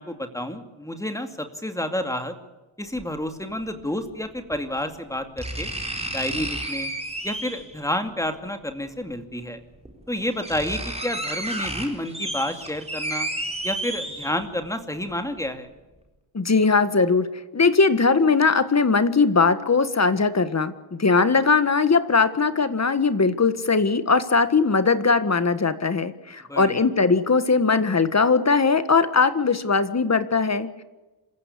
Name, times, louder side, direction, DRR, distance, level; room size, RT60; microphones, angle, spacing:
voice 1, 0.0-2.3 2.8-5.7 6.1-6.9 7.2-9.6 10.1-13.3 13.6-15.7 26.5-26.8, left 1 dB, 5° left, 7 dB, 2.4 m, -30 dB
sound 1, 3.0-3.1 4.5-4.6 5.4-7.8 9.1-9.2 9.8-9.9 10.2-14.6 15.0-15.1, right 1 dB, 10° right, 4.6 m, -31 dB
voice 2, 16.3-17.3 17.5-30.8, left 4 dB, 30° left, 12 dB, 1.6 m, -20 dB
27.0 x 15.5 x 8.5 m, 1.1 s
wide cardioid pair, 135°, 49 cm